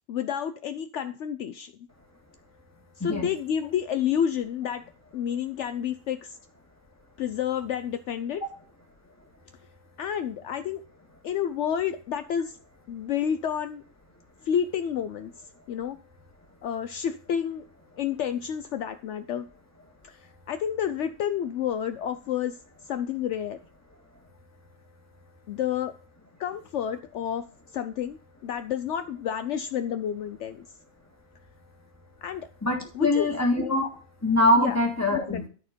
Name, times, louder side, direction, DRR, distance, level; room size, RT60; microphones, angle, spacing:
voice 1, 0.1-1.7 3.0-4.8 5.1-6.4 7.2-8.4 10.0-10.8 11.2-12.6 12.9-13.8 14.4-15.3 15.7-16.0 16.6-17.7 18.0-19.5 20.0-22.6 22.9-23.6 25.5-25.9 26.4-27.4 27.7-30.7 32.2-32.5 32.9-33.3 34.6-34.8 35.3-35.4, left 9 dB, 70° left, 10 dB, 0.9 m, -29 dB
voice 2, 32.6-33.9 34.2-35.5, left 1 dB, 10° left, 2 dB, 1.8 m, -23 dB
13.0 x 4.4 x 5.2 m, 0.40 s
omnidirectional pair, 1.3 m